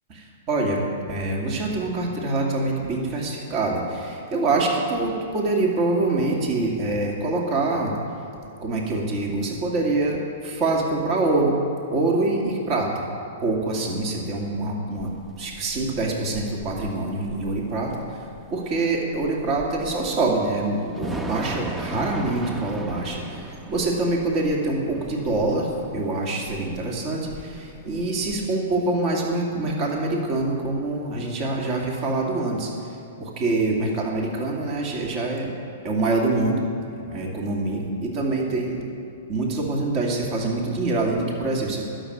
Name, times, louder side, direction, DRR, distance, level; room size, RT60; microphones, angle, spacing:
voice 1, 0.1-0.8 1.1-8.0 8.6-11.6 11.9-12.9 13.4-15.1 15.4-32.7 33.2-35.5 35.8-36.7 37.0-38.8 39.3-41.8, right 2 dB, 40° right, -1 dB, 2.4 m, -25 dB
Thunder / Rain, 15.0-28.5, right 3 dB, 15° right, 0.9 m, -38 dB
12.5 x 7.2 x 9.8 m, 2.8 s
hypercardioid pair, 120°, 0 cm